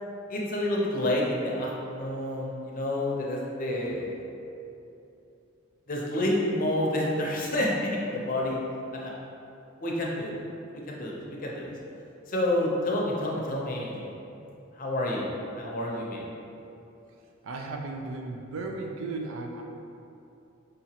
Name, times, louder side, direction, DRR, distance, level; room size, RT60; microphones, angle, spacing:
voice 1, 0.3-4.2 5.9-8.6 8.9-9.1 9.8-10.3 10.7-11.7 12.3-14.1 14.8-15.3 15.6-16.2, left 1 dB, 45° left, -3 dB, 0.6 m, -29 dB
voice 2, 17.4-19.6, right 3 dB, 80° right, 2 dB, 0.4 m, -35 dB
5.0 x 2.8 x 2.9 m, 2.8 s
head